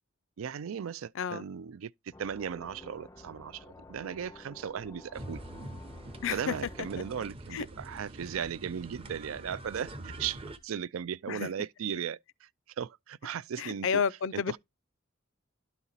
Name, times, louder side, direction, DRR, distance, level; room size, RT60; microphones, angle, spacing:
voice 1, 0.4-1.9 2.2-5.4 6.3-12.5 12.8-13.9 14.3-14.6, right 8 dB, 75° right, 0.4 m, -37 dB
sound 1, 2.1-7.3, left 2 dB, 15° left, 0.5 m, -51 dB
sound 2, 5.1-10.6, right 1 dB, 25° right, 0.8 m, -45 dB
voice 2, 6.2-6.5 7.5-7.7 11.3-11.5 13.6-14.6, left 6 dB, 65° left, 0.5 m, -30 dB
11.5 x 4.2 x 4.0 m
head